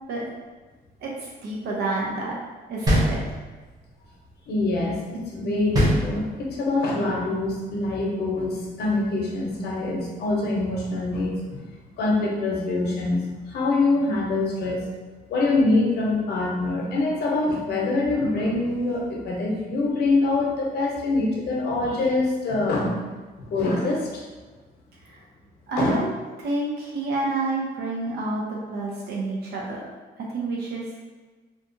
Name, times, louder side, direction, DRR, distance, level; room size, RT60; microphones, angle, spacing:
voice 1, 1.0-2.4 2.7-3.2 25.0-25.2 25.7-26.1 26.4-29.8 30.2-30.9, right 2 dB, 85° right, -3 dB, 0.5 m, -29 dB
sound 1, 2.9-3.8 5.7-6.7, equal, 25° right, 0.6 m, -22 dB
voice 2, 4.5-11.7 12.0-14.9 15.3-22.9 23.4-24.2 25.8-26.0, left 2 dB, 85° left, -2 dB, 0.7 m, -24 dB
2.8 x 2.3 x 2.6 m, 1.3 s
cardioid pair, 175°, 16 cm